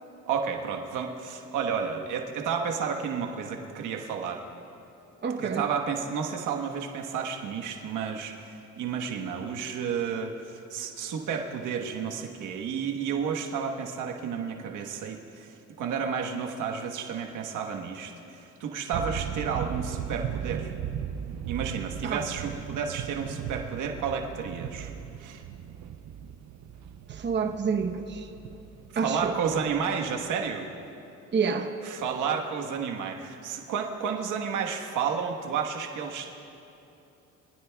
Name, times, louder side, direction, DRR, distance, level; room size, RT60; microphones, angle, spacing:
voice 1, 0.3-4.4 5.4-20.7 21.5-24.9 25.2-25.4 29.0-30.7 31.8-36.3, right 6 dB, 85° right, 2 dB, 1.3 m, -31 dB
voice 2, 5.2-5.7 22.0-22.2 27.1-28.3 29.0-29.3 31.3-31.7, right 5 dB, 35° right, 4 dB, 0.9 m, -28 dB
sound 1, 18.9-30.4, right 9 dB, 65° right, 0.6 m, -37 dB
24.0 x 15.5 x 2.3 m, 2.9 s
cardioid pair, 90°, 30 cm